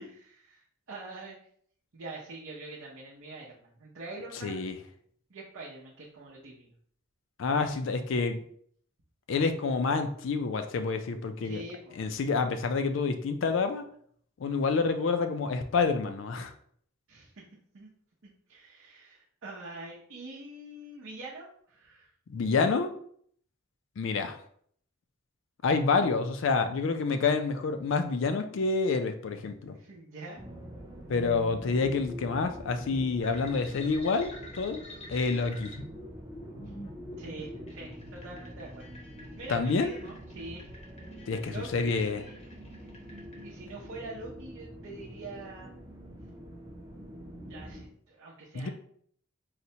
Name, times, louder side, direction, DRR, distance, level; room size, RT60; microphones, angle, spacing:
voice 1, 0.0-1.4 1.9-4.6 5.3-6.7 11.4-12.0 17.1-17.4 17.7-17.9 18.2-22.1 29.7-30.4 37.2-38.9 39.4-40.7 41.5-42.4 43.4-45.7 47.5-48.7, right 2 dB, 80° right, -5 dB, 0.6 m, -44 dB
voice 2, 4.4-4.8 7.4-8.4 9.3-11.6 12.0-13.8 14.4-16.5 22.3-22.9 24.0-24.4 25.6-29.8 31.1-34.8 35.1-35.7 39.5-40.0 41.3-42.2 48.5-48.7, left 4 dB, 70° left, 8 dB, 0.4 m, -28 dB
sound 1, 30.4-47.9, equal, 15° right, 0.5 m, -45 dB
sound 2, 33.2-43.4, left 1 dB, 30° left, 0.6 m, -48 dB
4.0 x 2.1 x 2.7 m, 0.62 s
head